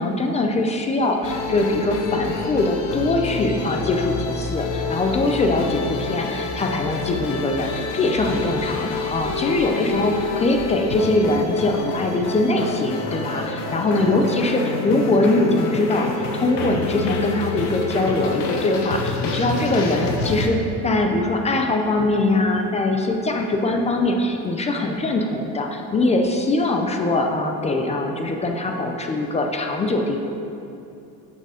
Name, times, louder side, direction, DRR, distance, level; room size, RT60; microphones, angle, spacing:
voice 1, 0.0-30.2, left 2 dB, 15° left, 3 dB, 0.4 m, -22 dB
sound 1, 1.2-20.5, left 4 dB, 70° left, 1.3 m, -28 dB
11.0 x 6.7 x 4.9 m, 2.8 s
cardioid pair, 170°, 42 cm